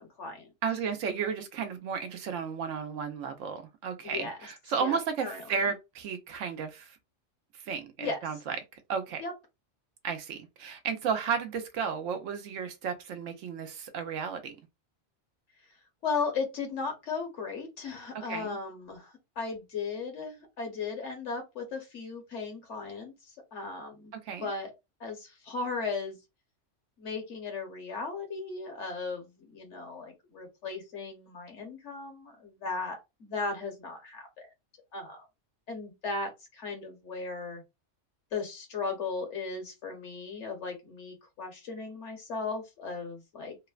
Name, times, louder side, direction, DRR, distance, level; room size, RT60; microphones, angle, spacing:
voice 1, 0.0-0.5 4.0-4.4 4.8-5.0 5.2-5.4 8.0-8.2 9.2-9.3 16.0-24.7 25.0-26.2 27.0-34.5 34.9-35.3 35.7-37.6 38.3-43.5, left 4 dB, 70° left, 1.3 m, -36 dB
voice 2, 0.6-7.0 7.5-8.6 8.9-9.2 10.0-14.5 18.2-18.6 24.1-24.5, right 6 dB, 85° right, 1.0 m, -33 dB
3.1 x 2.1 x 2.3 m
omnidirectional pair, 1.3 m